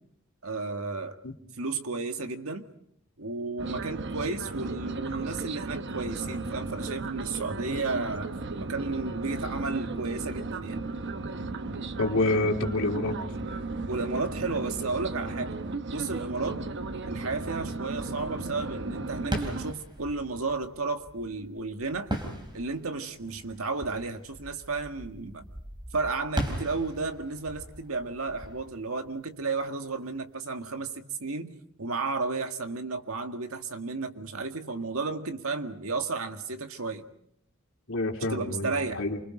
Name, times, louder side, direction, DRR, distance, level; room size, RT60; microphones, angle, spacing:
voice 1, 0.4-1.2 1.6-2.7 3.2-10.9 13.9-15.6 15.9-16.6 17.0-22.1 22.5-25.5 25.9-31.5 31.8-37.0 38.3-39.0, right 3 dB, 80° right, 6 dB, 1.9 m, -33 dB
sound 1, 3.6-19.7, right 3 dB, 55° right, 0.9 m, -35 dB
voice 2, 12.0-13.2 37.9-39.2, left 2 dB, 65° left, 2 dB, 3.2 m, -27 dB
sound 2, 19.2-29.8, equal, 20° right, 3.8 m, -38 dB
28.5 x 25.5 x 5.0 m, 0.70 s
head